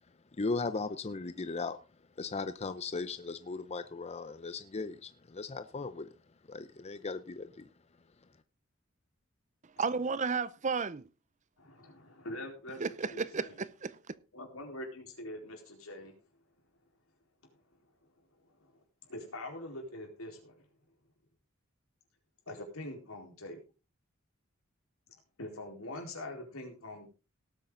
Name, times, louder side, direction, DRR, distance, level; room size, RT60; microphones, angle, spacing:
voice 1, 0.3-1.8 2.2-6.1 6.5-7.7, left 3 dB, 30° left, 0.6 m, -37 dB
voice 2, 9.8-11.1 12.8-14.1, right 5 dB, 35° right, 0.6 m, -33 dB
voice 3, 11.6-13.5 14.3-16.2 18.5-20.7 22.5-23.6 25.4-27.1, left 1 dB, 85° left, 4.3 m, -44 dB
18.0 x 8.5 x 3.8 m
head